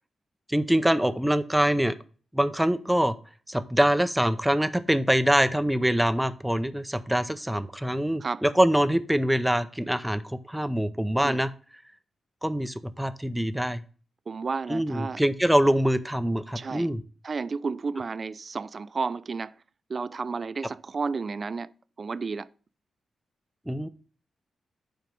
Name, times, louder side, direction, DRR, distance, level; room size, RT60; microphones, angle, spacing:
voice 1, 0.5-2.0 2.3-3.1 3.5-11.5 12.4-13.8 14.7-17.0 23.7-23.9, equal, 5° right, 0.7 m, -24 dB
voice 2, 14.3-15.2 16.5-16.9 17.2-19.5 19.9-21.7 22.0-22.5, right 4 dB, 45° right, 0.4 m, -32 dB
7.8 x 4.5 x 5.2 m
cardioid pair, 80°, 0 cm